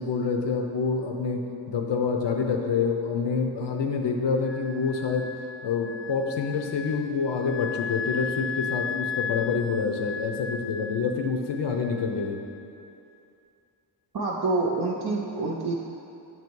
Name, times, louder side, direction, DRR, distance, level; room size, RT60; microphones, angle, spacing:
voice 1, 0.0-5.3 5.6-12.4, left 5 dB, 65° left, 3 dB, 0.7 m, -27 dB
Wind instrument woodwind instrument, 4.4-12.7, left 6 dB, 30° left, 0.5 m, -36 dB
voice 2, 14.1-15.7, right 3 dB, 50° right, -4 dB, 0.7 m, -27 dB
9.1 x 3.0 x 4.6 m, 2.6 s
wide cardioid pair, 110°, 45 cm